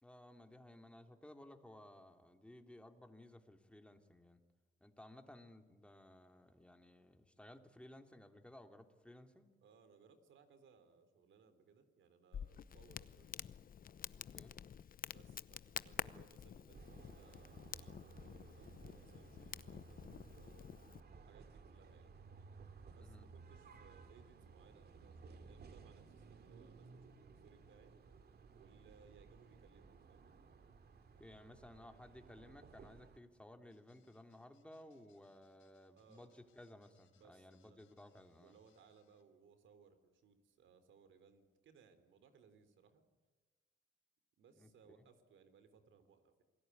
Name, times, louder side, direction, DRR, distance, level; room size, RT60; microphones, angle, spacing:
voice 1, 0.0-4.4 4.8-9.5 14.1-14.5 23.0-23.3 31.2-38.5 44.5-44.7 45.0-45.1, left 1 dB, 5° left, 6 dB, 2.9 m, -58 dB
voice 2, 9.6-13.3 15.1-20.7 21.2-22.2 22.9-27.9 28.6-30.3 36.0-36.3 37.2-37.8 38.4-43.1 44.4-46.4, right 6 dB, 75° right, 10 dB, 3.7 m, -66 dB
Crackle, 12.3-21.0, left 8 dB, 45° left, 0.9 m, -49 dB
sound 1, 16.7-33.2, right 4 dB, 55° right, 2.6 m, -58 dB
sound 2, 33.7-39.2, left 9 dB, 85° left, 4.2 m, -78 dB
28.0 x 19.0 x 9.6 m, 1.3 s
cardioid pair, 90°, 20 cm